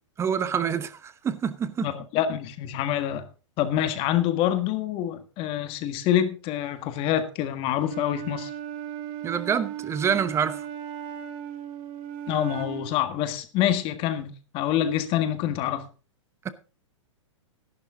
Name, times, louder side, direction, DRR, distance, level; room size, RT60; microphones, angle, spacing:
voice 1, 0.2-1.9 9.2-10.7 16.4-16.5, right 7 dB, 15° right, 0.9 m, -27 dB
voice 2, 1.8-3.3 3.6-8.5 12.3-15.9, left 11 dB, 35° left, 1.6 m, -26 dB
Wind instrument woodwind instrument, 7.8-13.0, right 9 dB, 35° right, 1.5 m, -36 dB
12.0 x 11.5 x 3.8 m
hypercardioid pair, 120°, 16 cm